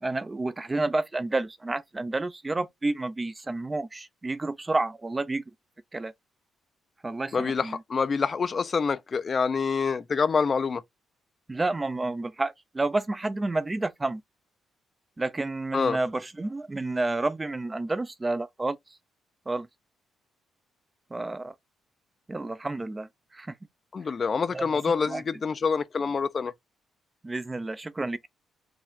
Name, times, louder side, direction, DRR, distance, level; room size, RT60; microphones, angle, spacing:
voice 1, 0.0-5.4 5.9-6.1 7.0-7.8 11.5-14.2 15.2-18.8 19.5-19.7 21.1-21.5 22.3-23.1 23.3-23.5 24.5-25.2 27.2-28.3, right 2 dB, 20° right, 0.4 m, -30 dB
voice 2, 7.3-10.8 15.7-16.0 23.9-26.5, left 5 dB, 40° left, 0.5 m, -26 dB
4.7 x 2.5 x 3.5 m
cardioid pair, 85°, 0 cm